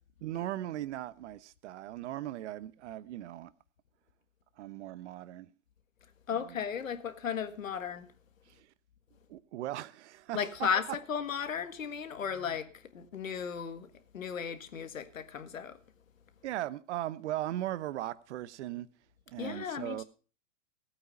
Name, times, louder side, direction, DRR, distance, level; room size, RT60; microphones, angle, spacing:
voice 1, 0.2-3.5 4.6-5.5 6.3-6.6 8.5-8.7 9.3-10.7 12.4-12.6 16.4-18.9 19.3-20.0, right 13 dB, 60° right, 1.0 m, -38 dB
voice 2, 6.3-8.1 10.3-15.8 19.4-20.0, left 7 dB, 85° left, 1.7 m, -35 dB
16.0 x 8.7 x 5.3 m
hypercardioid pair, 120°, 39 cm